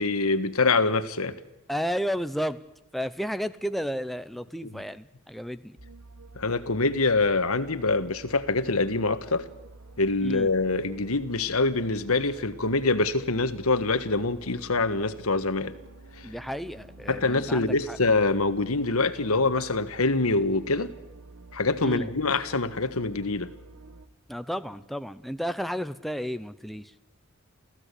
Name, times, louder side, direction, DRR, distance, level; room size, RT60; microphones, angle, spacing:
voice 1, 0.0-1.4 4.6-4.7 6.3-9.4 10.0-15.7 17.1-20.9 21.5-23.5, left 3 dB, 80° left, 1.6 m, -25 dB
voice 2, 1.7-2.6 2.9-5.7 10.2-10.5 16.2-18.0 21.8-22.1 24.3-26.9, equal, ahead, 0.7 m, -32 dB
sound 1, 5.8-24.1, right 2 dB, 85° right, 1.8 m, -49 dB
29.0 x 15.5 x 8.4 m
head